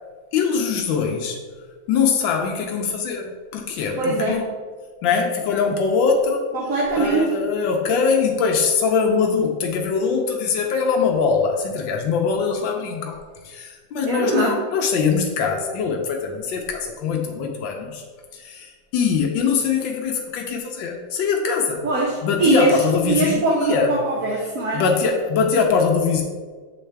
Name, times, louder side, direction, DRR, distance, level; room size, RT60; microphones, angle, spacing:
voice 1, 0.3-1.4 1.9-4.4 5.0-6.4 7.0-18.0 18.3-21.9 22.2-23.9 24.7-26.2, left 5 dB, 85° left, 2 dB, 1.4 m, -22 dB
voice 2, 3.9-4.4 6.5-7.3 14.0-14.6 21.8-24.8, right 2 dB, 55° right, -3 dB, 1.1 m, -22 dB
7.5 x 3.9 x 3.3 m, 1.5 s
omnidirectional pair, 2.0 m